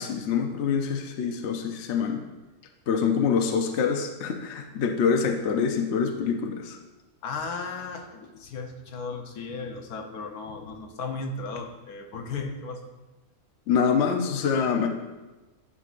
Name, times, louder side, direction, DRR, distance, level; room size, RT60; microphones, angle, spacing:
voice 1, 0.0-2.2 2.9-6.8 13.7-14.9, left 6 dB, 60° left, 4 dB, 0.9 m, -25 dB
voice 2, 7.2-12.9, left 4 dB, 75° left, 4 dB, 1.3 m, -35 dB
11.0 x 6.9 x 2.5 m, 1.1 s
omnidirectional pair, 1.6 m